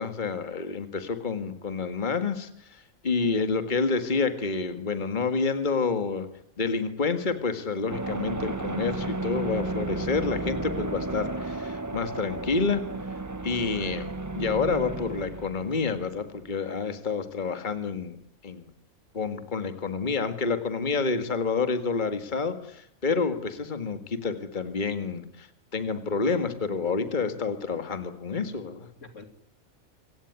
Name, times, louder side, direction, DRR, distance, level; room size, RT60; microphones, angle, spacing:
voice 1, 0.0-6.3 6.6-12.8 13.4-14.0 14.4-18.2 18.4-18.7 19.1-28.9, left 4 dB, 35° left, 9 dB, 1.9 m, -28 dB
voice 2, 3.2-3.7 13.8-14.1 29.0-29.2, left 2 dB, 70° left, 8 dB, 3.0 m, -45 dB
sound 1, 7.9-16.5, right 2 dB, 15° right, 0.8 m, -33 dB
26.5 x 16.5 x 9.7 m, 0.72 s
omnidirectional pair, 1.4 m